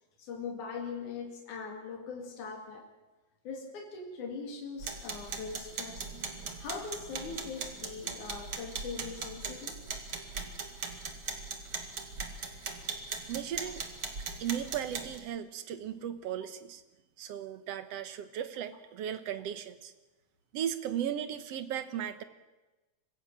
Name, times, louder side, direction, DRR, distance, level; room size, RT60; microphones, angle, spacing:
voice 1, 0.2-2.9 3.4-6.1 6.6-9.8 12.8-12.9, left 5 dB, 80° left, 2 dB, 3.8 m, -41 dB
sound 1, 4.8-15.2, right 5 dB, 45° right, 2.7 m, -39 dB
voice 2, 13.3-13.9 14.4-16.8 17.2-19.9 20.5-22.2, right 9 dB, 65° right, 11 dB, 2.0 m, -36 dB
25.0 x 15.5 x 7.4 m, 1.1 s
omnidirectional pair, 3.4 m